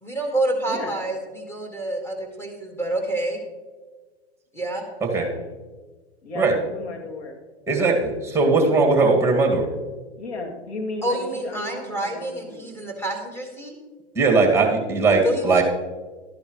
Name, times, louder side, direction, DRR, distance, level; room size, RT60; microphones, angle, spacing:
voice 1, 0.0-3.4 4.5-4.8 11.0-13.8 15.2-15.6, right 1 dB, 5° left, 1 dB, 2.1 m, -27 dB
voice 2, 6.2-7.4 10.1-12.8, left 2 dB, 75° left, 1 dB, 2.8 m, -34 dB
voice 3, 7.7-9.7 14.1-15.6, right 3 dB, 10° right, 1 dB, 2.1 m, -19 dB
13.0 x 10.5 x 3.2 m, 1.3 s
hypercardioid pair, 115°, 33 cm